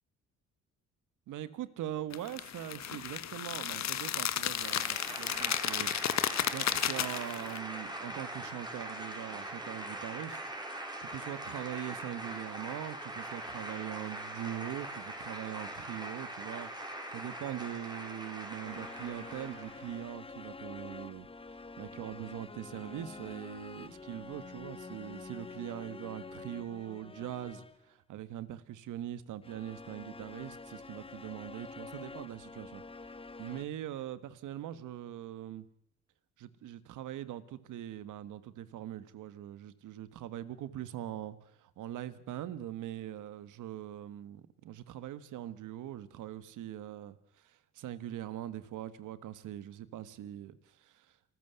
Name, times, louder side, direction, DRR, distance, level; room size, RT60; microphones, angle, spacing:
voice 1, 1.3-10.4 11.0-16.7 17.1-33.1 33.4-35.7 36.4-51.1, right 12 dB, 80° right, 1.5 m, -42 dB
sound 1, 2.1-7.6, left 10 dB, 65° left, 1.4 m, -33 dB
sound 2, 4.0-20.0, right 1 dB, 15° right, 4.7 m, -42 dB
sound 3, 18.6-27.9 29.4-33.7, left 3 dB, 20° left, 0.9 m, -47 dB
27.0 x 14.5 x 8.1 m
cardioid pair, 90°, 30 cm